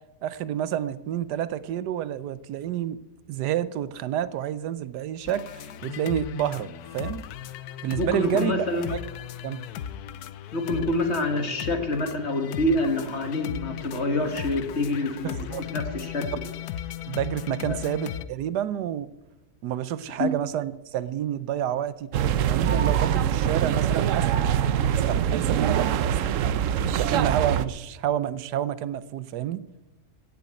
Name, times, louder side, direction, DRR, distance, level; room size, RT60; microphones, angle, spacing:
voice 1, 0.2-3.0 3.3-7.3 7.8-8.5 8.9-9.0 9.4-9.6 15.2-15.7 17.1-19.1 19.6-22.1 22.5-24.3 25.0-26.4 27.0-29.6, right 11 dB, 80° right, 16 dB, 1.3 m, -29 dB
sound 1, 5.3-18.2, left 10 dB, 75° left, 1.1 m, -37 dB
voice 2, 8.0-8.9 10.5-16.3 17.7-17.8 20.2-20.3, left 1 dB, 40° left, 6 dB, 1.8 m, -26 dB
sound 2, 22.1-27.7, right 9 dB, 65° right, 0.9 m, -23 dB
16.0 x 7.0 x 9.0 m, 1.0 s
omnidirectional pair, 1.7 m